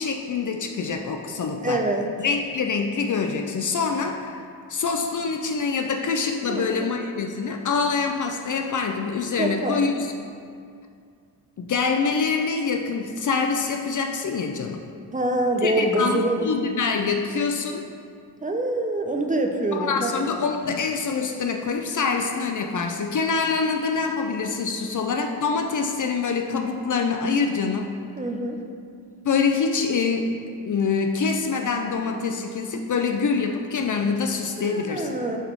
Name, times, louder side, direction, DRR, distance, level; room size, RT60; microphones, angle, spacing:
voice 1, 0.0-1.8 2.2-10.1 11.6-14.8 15.6-17.9 19.7-27.9 29.2-35.1, left 5 dB, 40° left, 4 dB, 0.6 m, -25 dB
voice 2, 1.6-2.1 6.5-6.9 9.4-9.9 15.1-16.4 18.4-20.1 28.2-28.6 34.6-35.4, right 1 dB, 15° right, 2 dB, 0.7 m, -25 dB
6.7 x 4.0 x 4.6 m, 2.3 s
hypercardioid pair, 45°, 48 cm